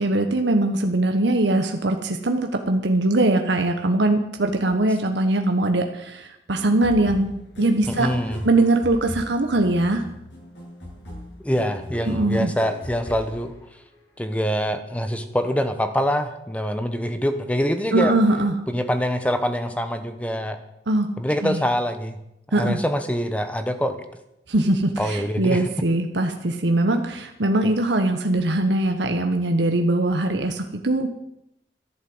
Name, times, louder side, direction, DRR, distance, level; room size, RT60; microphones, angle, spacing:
voice 1, 0.0-7.3 7.6-8.1 8.4-10.0 12.1-12.5 17.9-18.5 20.9-21.1 21.4-21.6 22.5-22.8 24.5-31.1, right 2 dB, 75° right, 5 dB, 1.2 m, -21 dB
sound 1, 6.5-14.2, left 1 dB, 80° left, 7.8 m, -38 dB
voice 2, 7.9-8.4 11.4-13.5 14.2-18.1 18.7-20.6 21.2-22.2 22.5-24.0 25.0-25.7, equal, 5° left, 9 dB, 1.1 m, -25 dB
13.0 x 11.0 x 7.9 m, 0.83 s
head